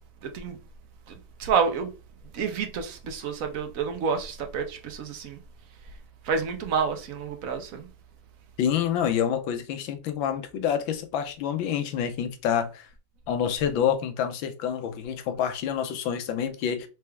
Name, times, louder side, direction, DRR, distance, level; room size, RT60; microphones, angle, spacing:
voice 1, 0.2-0.6 1.1-1.9 2.3-5.4 6.2-7.9, right 6 dB, 60° right, 0.9 m, -29 dB
voice 2, 8.6-12.9 13.3-16.9, left 8 dB, 85° left, 1.5 m, -27 dB
4.4 x 3.5 x 3.3 m
omnidirectional pair, 2.1 m